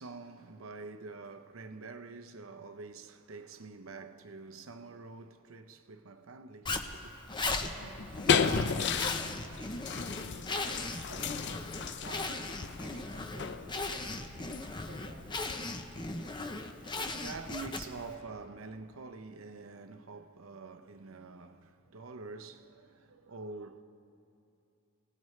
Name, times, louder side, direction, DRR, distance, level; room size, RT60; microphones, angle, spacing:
voice 1, 0.0-7.1 16.4-23.8, right 3 dB, 80° right, 0.7 m, -46 dB
Zipper (clothing), 6.7-18.1, left 3 dB, 20° left, 0.7 m, -38 dB
voice 2, 7.6-9.6 10.1-12.5 12.7-14.4 14.8-15.3, right 2 dB, 55° right, 1.0 m, -52 dB
sound 1, 7.8-15.9, left 6 dB, 60° left, 0.5 m, -34 dB
25.0 x 17.5 x 3.2 m
head